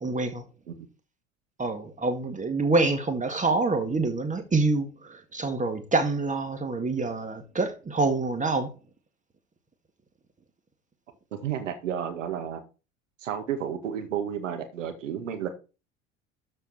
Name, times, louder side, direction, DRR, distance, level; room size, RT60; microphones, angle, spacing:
voice 1, 0.0-0.4 1.6-8.7, right 3 dB, 20° right, 1.8 m, -26 dB
voice 2, 11.3-12.6 13.2-15.5, right 9 dB, 80° right, 2.1 m, -32 dB
13.0 x 4.7 x 4.6 m
hypercardioid pair, 70°, 37 cm